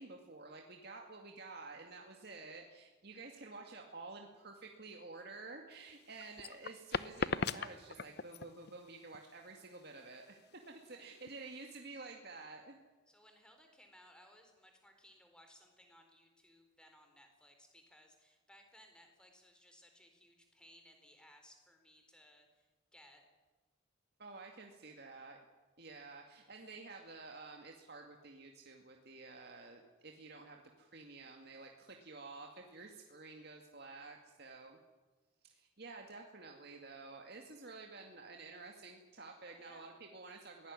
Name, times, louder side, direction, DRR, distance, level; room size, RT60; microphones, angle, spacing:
voice 1, 0.0-10.4 10.7-12.8 24.2-25.4 25.8-34.8 35.4-40.7, right 3 dB, 50° right, 2 dB, 2.2 m, -51 dB
sound 1, 5.7-11.7, left 4 dB, 50° left, 0.8 m, -40 dB
voice 2, 13.1-23.2 39.4-39.9, equal, 5° left, 4 dB, 4.2 m, -63 dB
23.0 x 18.5 x 9.8 m, 1.3 s
head